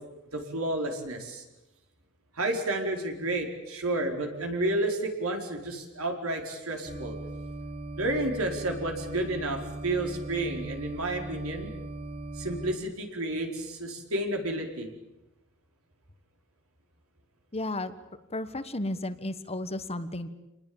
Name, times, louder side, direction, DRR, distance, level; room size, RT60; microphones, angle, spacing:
voice 1, 0.0-1.4 2.4-7.1 8.0-11.7 12.3-14.9, right 1 dB, 70° right, 3 dB, 4.8 m, -31 dB
sound 1, 6.9-12.8, right 2 dB, 30° right, 2.2 m, -39 dB
voice 2, 17.5-17.9 18.3-20.3, left 1 dB, 30° left, 11 dB, 1.4 m, -33 dB
27.5 x 20.0 x 9.0 m, 0.95 s
head